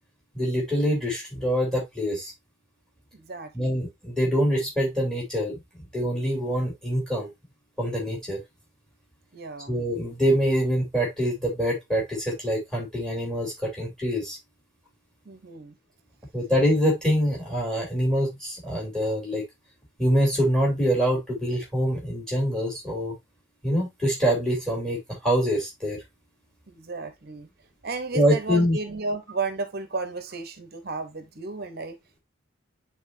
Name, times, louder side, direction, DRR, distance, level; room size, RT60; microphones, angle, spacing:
voice 1, 0.3-2.3 3.5-5.6 5.9-7.3 7.8-8.4 9.7-14.4 16.3-19.4 20.0-23.1 23.6-26.0 28.1-28.8, equal, 5° left, 3.0 m, -25 dB
voice 2, 3.1-3.8 9.3-9.7 15.3-15.8 26.7-27.5 27.8-32.0, right 3 dB, 45° right, 0.8 m, -33 dB
9.6 x 3.9 x 2.6 m
head